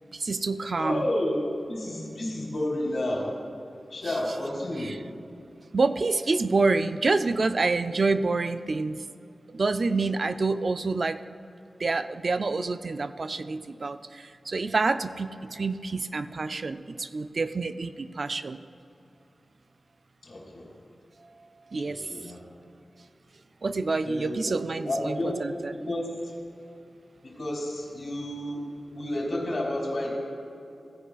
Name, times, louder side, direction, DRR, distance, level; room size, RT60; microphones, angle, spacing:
voice 1, 0.1-1.0 5.7-9.0 9.5-11.2 11.8-18.6 21.7-22.0 23.6-25.7, right 3 dB, 50° right, 11 dB, 0.3 m, -27 dB
voice 2, 0.7-3.4 3.9-4.9 20.2-20.7 21.8-22.4 24.0-24.6 24.8-26.3 27.2-30.1, left 1 dB, 65° left, -2 dB, 2.5 m, -31 dB
16.0 x 9.8 x 2.3 m, 2.7 s
wide cardioid pair, 115°, 0 cm